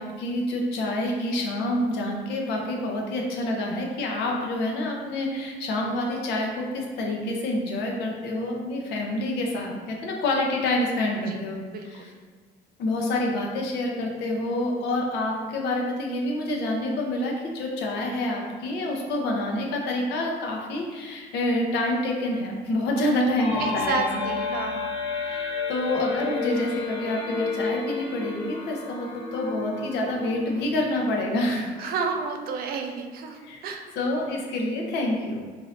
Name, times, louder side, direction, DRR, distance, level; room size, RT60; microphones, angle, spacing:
voice 1, 0.0-12.1 12.8-24.3 25.2-31.9 33.4-33.6 34.0-35.4, left 1 dB, 80° left, 0 dB, 0.7 m, -27 dB
voice 2, 11.3-12.1 23.6-24.9 31.8-33.9, right 5 dB, 60° right, 4 dB, 0.4 m, -31 dB
sound 1, 23.4-31.0, left 4 dB, 35° left, 0.5 m, -32 dB
2.7 x 2.6 x 3.1 m, 1.5 s
cardioid pair, 110°, 17 cm